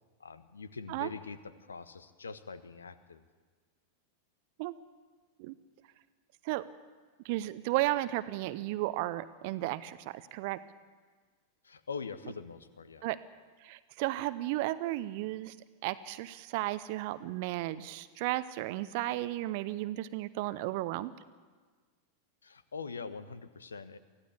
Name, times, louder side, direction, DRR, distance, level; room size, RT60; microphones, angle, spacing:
voice 1, 0.2-3.2 11.6-13.1 22.4-24.0, left 5 dB, 70° left, 14 dB, 1.3 m, -43 dB
voice 2, 7.2-10.6 13.0-13.2 13.6-15.5 15.8-21.1, right 17 dB, 50° right, 15 dB, 0.8 m, -34 dB
24.0 x 16.0 x 8.3 m, 1.5 s
figure-of-eight pair, 90°, 0 cm